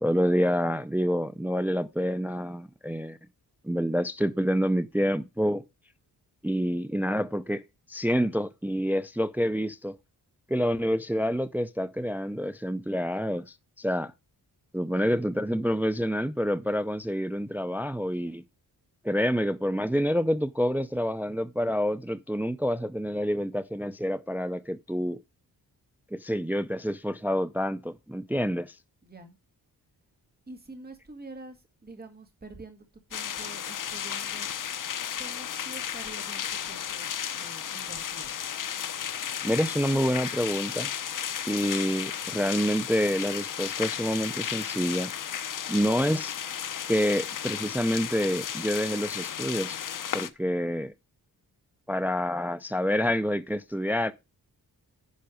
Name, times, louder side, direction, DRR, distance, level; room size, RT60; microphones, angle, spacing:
voice 1, 0.0-3.2 3.6-5.6 6.4-7.6 7.9-10.0 10.5-14.1 14.7-18.4 19.0-25.2 26.1-28.7 39.4-40.9 41.5-45.1 45.7-46.4 46.9-49.8 50.1-50.9 51.9-54.1, equal, 5° right, 0.4 m, -27 dB
voice 2, 14.8-15.2 29.0-29.4 30.5-34.5 35.2-38.4, right 2 dB, 25° right, 2.2 m, -47 dB
sound 1, 33.1-50.3, left 9 dB, 55° left, 0.8 m, -34 dB
10.5 x 5.1 x 4.9 m
wide cardioid pair, 120°, 37 cm